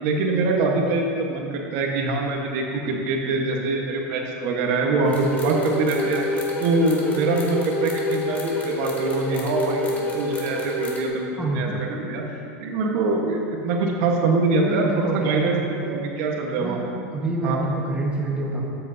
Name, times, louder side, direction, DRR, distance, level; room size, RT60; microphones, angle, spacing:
voice 1, 0.0-6.2 6.6-12.2 12.6-16.8 17.4-17.6, right 3 dB, 60° right, 0 dB, 1.2 m, -24 dB
sound 1, 5.0-11.1, left 1 dB, 15° left, 1.7 m, -27 dB
voice 2, 11.4-12.0 14.5-15.6 16.6-16.8 17.1-18.6, right 2 dB, 15° right, -3 dB, 1.3 m, -27 dB
13.5 x 7.9 x 2.7 m, 2.6 s
supercardioid pair, 135°, 8 cm